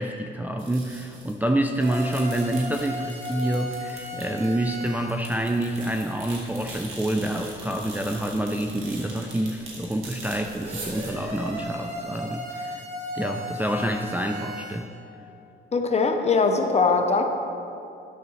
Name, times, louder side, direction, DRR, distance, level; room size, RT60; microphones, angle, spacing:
voice 1, 0.0-12.8 13.1-14.9, right 1 dB, 10° right, 3 dB, 0.4 m, -27 dB
sound 1, 0.6-1.5 1.7-12.0, right 3 dB, 90° right, 1.7 m, -42 dB
sound 2, 1.8-5.2 10.6-14.9, equal, 35° right, 1.5 m, -36 dB
voice 2, 15.7-17.2, left 4 dB, 35° left, 5 dB, 0.8 m, -21 dB
11.0 x 6.6 x 3.2 m, 2.7 s
cardioid pair, 90°, 20 cm